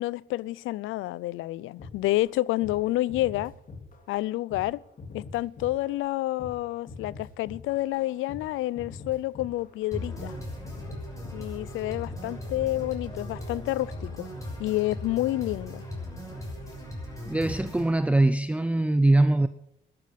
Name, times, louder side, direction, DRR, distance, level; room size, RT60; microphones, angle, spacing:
voice 1, 0.0-3.5 4.1-4.8 5.1-10.3 11.3-14.3 14.6-15.8, left 16 dB, 85° left, 0.4 m, -29 dB
sound 1, 1.8-2.3 2.6-2.8 3.1-4.2 4.5-12.3 12.5-13.0, left 3 dB, 45° left, 3.1 m, -43 dB
sound 2, 9.9-17.9, left 1 dB, 15° left, 6.1 m, -38 dB
voice 2, 17.3-19.5, right 2 dB, 5° right, 0.5 m, -22 dB
12.5 x 12.5 x 5.8 m
cardioid pair, 90°, 20 cm